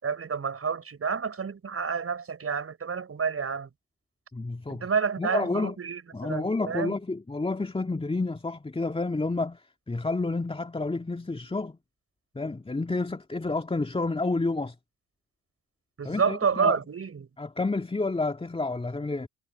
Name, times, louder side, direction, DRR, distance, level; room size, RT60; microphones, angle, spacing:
voice 1, 0.0-3.7 4.7-6.9 16.0-17.3, right 6 dB, 35° right, 6.1 m, -29 dB
voice 2, 4.3-4.9 5.2-5.7 6.1-11.8 12.3-14.8 16.0-16.8 17.4-19.3, left 3 dB, 15° left, 2.4 m, -30 dB
figure-of-eight pair, 50°, 41 cm